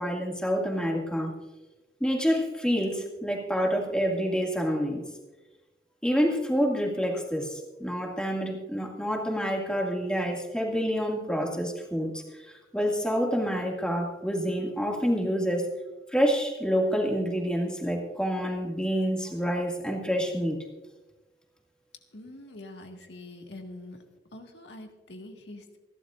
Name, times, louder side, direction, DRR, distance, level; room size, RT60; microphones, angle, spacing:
voice 1, 0.0-1.3 2.0-5.0 6.0-15.7 16.1-20.6, equal, 5° left, 0 dB, 2.1 m, -28 dB
voice 2, 22.1-24.0 24.3-25.8, left 1 dB, 85° left, 3 dB, 1.7 m, -44 dB
28.0 x 12.0 x 2.5 m, 1.1 s
head